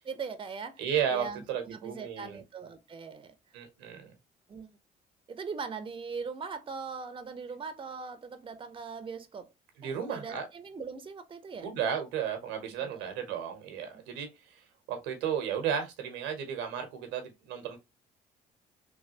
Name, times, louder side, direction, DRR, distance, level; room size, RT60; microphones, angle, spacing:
voice 1, 0.0-0.8 1.1-3.3 4.5-4.7 5.3-9.5 9.8-11.7 12.8-13.1, right 5 dB, 25° right, 0.6 m, -40 dB
voice 2, 0.8-2.4 3.5-4.1 9.8-10.5 11.6-14.6 14.9-17.8, right 8 dB, 85° right, 0.8 m, -34 dB
3.2 x 2.3 x 2.7 m
supercardioid pair, 60°, 19 cm